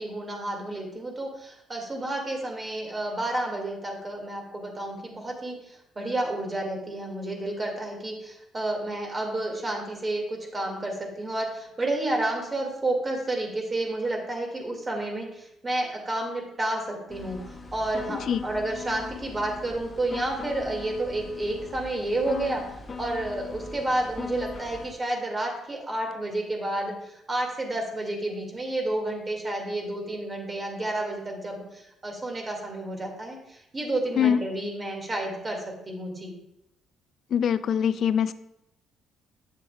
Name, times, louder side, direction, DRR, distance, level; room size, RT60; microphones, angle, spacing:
voice 1, 0.0-36.3, right 1 dB, 30° right, 2 dB, 1.9 m, -30 dB
sound 1, 17.1-24.9, left 4 dB, 40° left, 0.9 m, -40 dB
voice 2, 18.1-18.4 34.2-34.4 37.3-38.3, left 8 dB, 60° left, 15 dB, 0.3 m, -23 dB
8.0 x 7.0 x 2.3 m, 0.83 s
hypercardioid pair, 55°, 0 cm